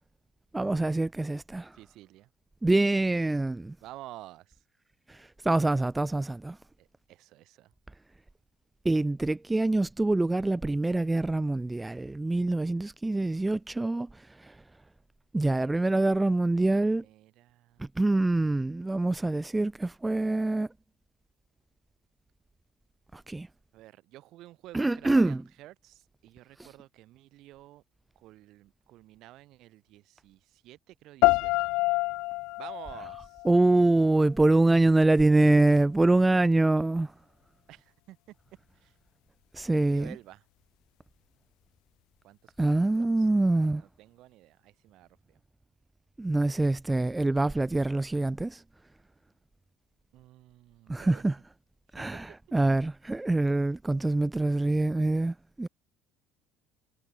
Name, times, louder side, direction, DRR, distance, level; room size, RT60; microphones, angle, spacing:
voice 1, 0.5-1.8 2.6-3.7 5.1-6.6 8.9-14.6 15.3-17.0 17.8-20.7 23.1-23.5 24.7-25.4 33.5-37.1 39.5-40.1 42.6-43.8 46.2-48.6 50.9-51.4 51.9-55.7, right 2 dB, 10° right, 0.3 m, -25 dB
voice 2, 1.7-2.3 3.8-4.6 6.8-7.7 16.2-16.3 16.6-17.8 23.7-27.8 28.2-31.7 32.6-33.4 37.7-38.2 38.7-38.9 39.7-40.4 42.2-43.3 43.5-45.4 50.1-51.2 52.0-52.2, right 16 dB, 55° right, 4.3 m, -51 dB
sound 1, 31.2-34.2, left 23 dB, 70° left, 0.8 m, -27 dB
cardioid pair, 165°, 0 cm